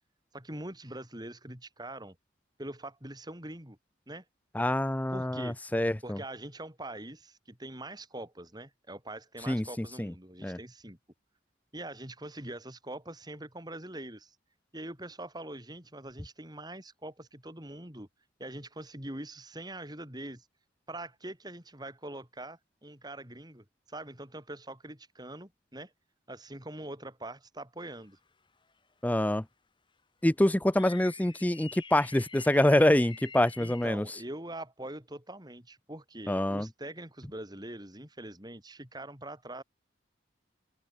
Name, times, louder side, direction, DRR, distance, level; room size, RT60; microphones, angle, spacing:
voice 1, 0.3-2.2 2.6-3.8 4.1-4.2 5.1-5.6 6.0-11.0 11.7-14.4 14.7-18.1 18.4-20.5 20.9-25.9 26.3-28.2 33.6-39.6, right 1 dB, 20° right, 5.0 m, -43 dB
voice 2, 4.5-6.2 9.5-10.1 10.4-10.6 29.0-29.4 30.2-34.1 36.3-36.7, left 1 dB, 10° left, 0.5 m, -26 dB
sound 1, 27.8-28.3 28.7-28.8 30.7-33.9, left 5 dB, 25° left, 2.1 m, -48 dB
open air
head